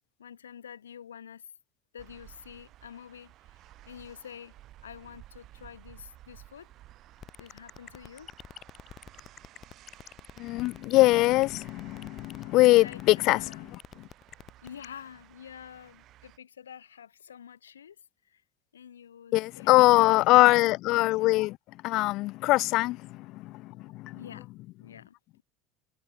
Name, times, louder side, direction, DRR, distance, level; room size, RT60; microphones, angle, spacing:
voice 1, 0.2-1.5 1.9-4.5 4.8-6.7 7.4-8.3 12.8-13.7 14.6-18.0 18.2-18.4 18.7-20.1 24.1-24.5 24.8-25.4, left 8 dB, 90° left, 5.3 m, -48 dB
sound 1, 2.0-16.4, right 14 dB, 55° right, 5.2 m, -55 dB
sound 2, 7.2-14.9, left 9 dB, 45° left, 2.1 m, -46 dB
voice 2, 10.4-13.4 19.3-21.6 21.8-23.0 23.3-23.5 23.9-24.2, left 19 dB, 60° left, 0.4 m, -22 dB
hypercardioid pair, 70°, 0 cm